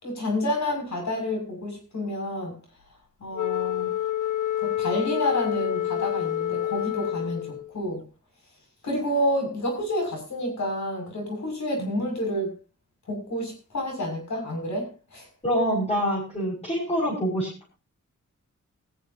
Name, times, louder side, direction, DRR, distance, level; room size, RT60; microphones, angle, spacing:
voice 1, 0.0-2.5 3.2-3.9 4.6-8.0 8.8-12.5 13.1-15.3, left 1 dB, 65° left, 2 dB, 6.5 m, -29 dB
Wind instrument woodwind instrument, 3.3-7.7, left 12 dB, 85° left, 1.2 m, -28 dB
voice 2, 15.4-17.5, equal, 20° left, -4 dB, 6.3 m, -25 dB
19.0 x 14.5 x 2.8 m, 0.31 s
wide cardioid pair, 100°, 31 cm